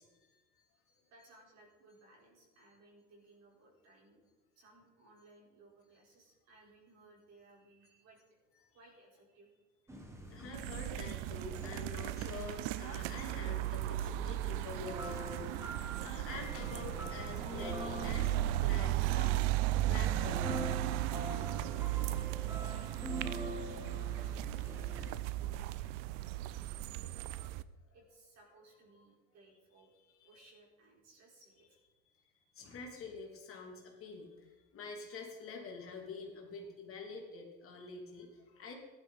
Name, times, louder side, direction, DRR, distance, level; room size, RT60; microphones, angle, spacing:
voice 1, 0.0-1.0 8.6-8.7 10.3-15.7 16.0-19.4 19.9-20.6 30.3-30.5 32.5-38.8, left 4 dB, 35° left, 0 dB, 2.8 m, -47 dB
voice 2, 1.1-4.2 4.5-8.2 8.7-9.6 22.4-27.6 27.9-29.9 30.2-31.8 38.4-38.5, right 2 dB, 45° right, -3 dB, 4.6 m, -62 dB
sound 1, 9.9-25.2, equal, 10° right, 1.6 m, -46 dB
sound 2, 10.5-27.6, right 15 dB, 75° right, 0.6 m, -36 dB
sound 3, 16.5-23.3, left 2 dB, 20° left, 2.7 m, -58 dB
15.0 x 11.0 x 4.1 m, 1.2 s
supercardioid pair, 125°, 36 cm